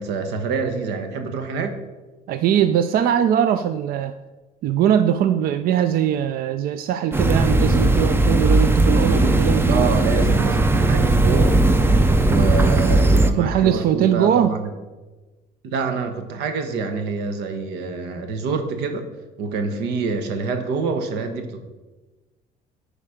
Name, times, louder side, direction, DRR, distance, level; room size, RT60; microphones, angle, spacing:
voice 1, 0.0-1.8 9.1-11.7 12.2-14.7 15.6-19.1 19.4-21.6, right 4 dB, 90° right, 7 dB, 1.1 m, -26 dB
voice 2, 2.3-4.1 4.6-10.0 13.4-14.5, right 9 dB, 60° right, 11 dB, 0.4 m, -21 dB
sound 1, 7.1-13.3, right 2 dB, 15° right, 0.6 m, -17 dB
9.6 x 5.0 x 5.0 m, 1.2 s
cardioid pair, 110°, 17 cm